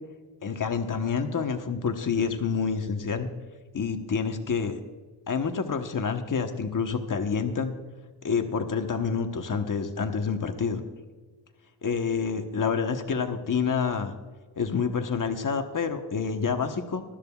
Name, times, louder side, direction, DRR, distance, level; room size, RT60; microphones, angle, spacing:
voice 1, 0.4-3.3 3.7-4.8 5.3-7.7 8.2-10.8 11.8-14.1 14.6-17.0, left 5 dB, 50° left, 6 dB, 1.2 m, -28 dB
20.0 x 13.0 x 2.4 m, 1.4 s
wide cardioid pair, 105°, 40 cm